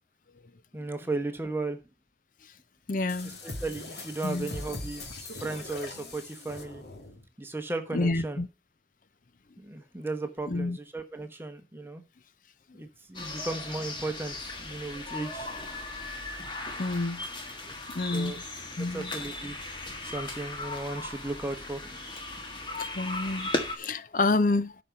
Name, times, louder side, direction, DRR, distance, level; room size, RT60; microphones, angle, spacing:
voice 1, 0.7-1.8 3.2-6.8 7.4-8.4 9.6-12.0 12.7-15.5 18.1-18.4 18.8-19.6 20.0-22.1 22.4-22.5, right 2 dB, 15° right, 1.1 m, -36 dB
voice 2, 2.9-3.4 4.2-4.5 7.9-8.5 10.5-10.8 12.7-12.8 16.8-17.2 17.9-18.4 18.8-19.1 22.8-24.8, left 2 dB, 50° left, 0.6 m, -29 dB
sound 1, 3.1-7.2, left 2 dB, 70° left, 2.2 m, -41 dB
sound 2, 13.1-23.8, left 2 dB, 25° left, 1.5 m, -37 dB
12.0 x 5.1 x 6.9 m
head